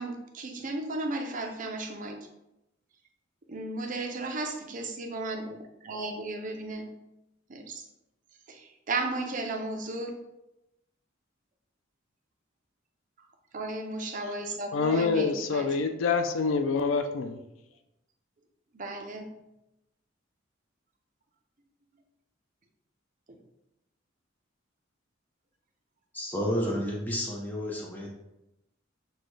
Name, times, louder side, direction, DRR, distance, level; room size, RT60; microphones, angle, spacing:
voice 1, 0.0-2.2 3.5-6.9 7.5-7.8 8.5-10.2 13.5-15.9 18.7-19.3 23.3-23.4, right 2 dB, 40° right, 0.6 m, -35 dB
voice 2, 14.7-17.4, left 4 dB, 70° left, 0.4 m, -26 dB
voice 3, 26.1-28.1, equal, 10° left, 0.6 m, -31 dB
6.2 x 2.2 x 3.1 m
head